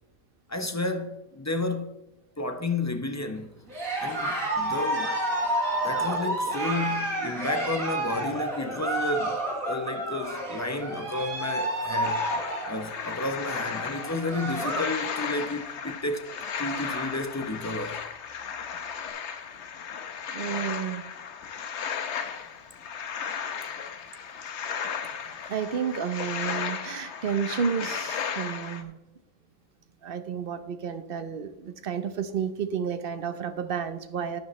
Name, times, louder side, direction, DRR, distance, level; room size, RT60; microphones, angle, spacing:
voice 1, 0.5-2.0 2.4-3.6 4.0-5.2 5.8-12.3 12.7-16.3 16.6-18.0, left 2 dB, 20° left, 0.4 m, -32 dB
Cheering, 3.7-15.0 15.3-15.7 16.1-16.2 16.4-17.2, right 1 dB, 70° right, 3.1 m, -30 dB
sound 1, 12.0-28.8, left 7 dB, 55° left, 1.1 m, -35 dB
voice 2, 20.3-21.0 25.5-29.0 30.0-34.4, right 7 dB, 50° right, 0.8 m, -31 dB
11.5 x 10.0 x 3.1 m
omnidirectional pair, 1.5 m